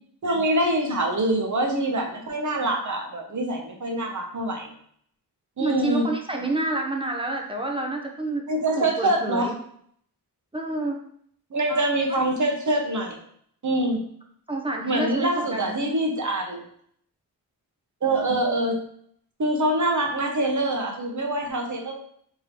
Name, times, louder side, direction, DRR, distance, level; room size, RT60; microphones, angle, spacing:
voice 1, 0.2-4.7 5.6-6.1 8.5-9.5 11.5-13.2 13.6-14.0 14.8-16.6 18.0-18.8 19.4-21.9, right 1 dB, 45° right, 2 dB, 0.9 m, -25 dB
voice 2, 5.6-8.4 8.8-9.5 10.5-11.0 14.5-15.8, right 2 dB, 15° right, 1 dB, 0.7 m, -28 dB
3.7 x 3.2 x 3.0 m, 0.64 s
cardioid pair, 60°, 40 cm